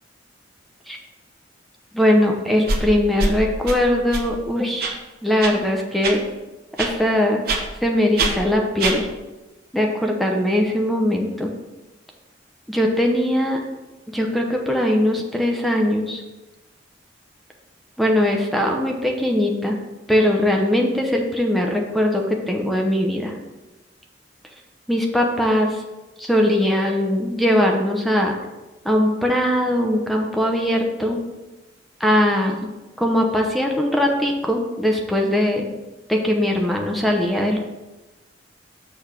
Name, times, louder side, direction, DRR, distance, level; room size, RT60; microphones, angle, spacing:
voice 1, 1.9-6.2 6.8-7.4 7.8-9.1 9.7-11.5 12.7-13.6 14.1-16.2 18.0-19.8 20.1-23.3 24.9-25.8 26.2-28.4 28.8-31.2 32.0-32.7 33.0-35.7 36.1-37.6, left 1 dB, ahead, 1 dB, 0.7 m, -20 dB
sound 1, 2.7-2.8 3.2-3.3 3.7-3.8 4.1-4.2 4.8-4.9 5.4-5.5 6.0-6.1 6.8-6.9 7.5-7.6 8.2-8.3 8.8-8.9, right 3 dB, 55° right, 1.0 m, -22 dB
6.7 x 3.4 x 6.0 m, 1.1 s
head